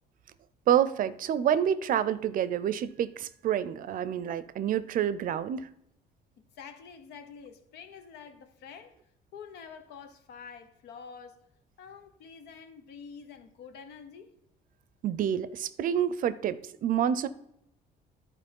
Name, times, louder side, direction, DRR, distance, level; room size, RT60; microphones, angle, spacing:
voice 1, 0.7-5.7 15.0-17.3, right 9 dB, 55° right, 0.5 m, -28 dB
voice 2, 6.4-9.0 9.3-11.4 11.8-14.3, left 6 dB, 80° left, 1.0 m, -47 dB
11.0 x 4.2 x 5.3 m
cardioid pair, 110°, 17 cm